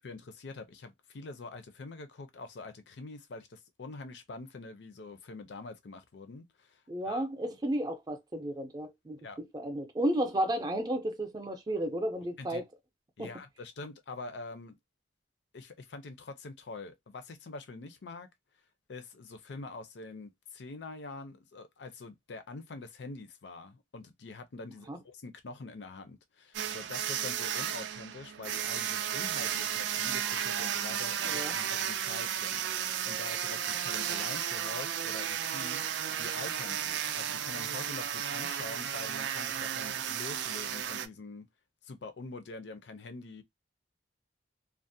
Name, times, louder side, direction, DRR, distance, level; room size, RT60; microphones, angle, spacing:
voice 1, 0.0-7.3 9.2-9.4 12.4-12.6 13.2-14.8 15.5-18.3 18.9-41.5 41.8-43.4, left 3 dB, 75° left, 0.5 m, -45 dB
voice 2, 6.9-12.6 13.2-13.3 24.9-25.0 31.2-31.5, right 1 dB, 25° right, 0.5 m, -33 dB
sound 1, 26.5-41.1, right 9 dB, 80° right, 0.3 m, -34 dB
2.4 x 2.1 x 2.6 m
head